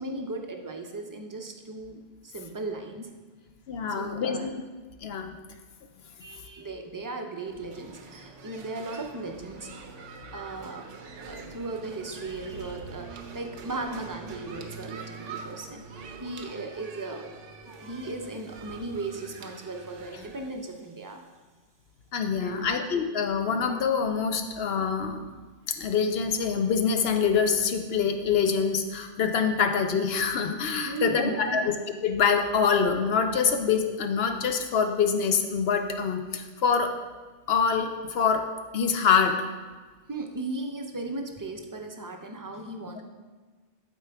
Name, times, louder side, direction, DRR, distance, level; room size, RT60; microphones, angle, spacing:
voice 1, 0.0-3.1 4.0-4.5 5.0-5.1 6.2-9.9 10.3-10.8 11.3-15.8 16.2-17.3 17.8-21.2 22.4-22.7 30.8-31.7 40.1-43.0, right 2 dB, 25° right, 3 dB, 0.4 m, -37 dB
voice 2, 3.7-4.5 5.0-5.3 22.1-25.3 25.8-31.6 32.0-36.9 37.5-38.4 38.7-39.4 43.0-43.1, left 6 dB, 65° left, 6 dB, 0.8 m, -25 dB
sound 1, 7.5-20.5, right 5 dB, 90° right, 1.1 m, -44 dB
11.5 x 4.5 x 3.4 m, 1.3 s
omnidirectional pair, 1.2 m